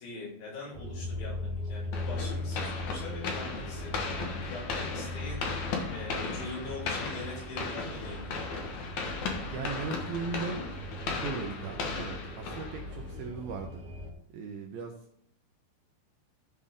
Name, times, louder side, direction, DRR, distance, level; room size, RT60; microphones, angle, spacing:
voice 1, 0.0-4.0 4.4-5.4 5.9-8.5, left 2 dB, 85° left, -7 dB, 6.9 m, -42 dB
sound 1, 0.7-14.1, left 1 dB, 55° right, 1.8 m, -39 dB
sound 2, 1.9-13.2, left 4 dB, 65° left, 1.9 m, -36 dB
voice 2, 9.5-10.7 11.2-13.8 14.3-14.9, right 4 dB, 75° right, 2 dB, 2.3 m, -37 dB
14.5 x 5.5 x 3.7 m, 0.67 s
omnidirectional pair, 5.3 m